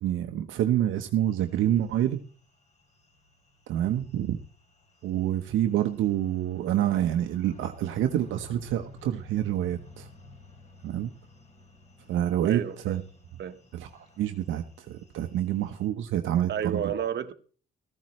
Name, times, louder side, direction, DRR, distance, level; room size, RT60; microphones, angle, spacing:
voice 1, 0.0-2.2 3.7-4.4 5.0-10.1 10.8-11.1 12.1-13.0 13.7-13.9 14.2-16.9, right 11 dB, 80° right, 0.9 m, -27 dB
sound 1, 1.3-15.9, left 2 dB, 35° left, 6.0 m, -54 dB
voice 2, 12.4-13.0 13.4-13.6 16.5-17.3, right 8 dB, 60° right, 1.3 m, -31 dB
15.0 x 14.5 x 3.1 m
cardioid pair, 90°, 20 cm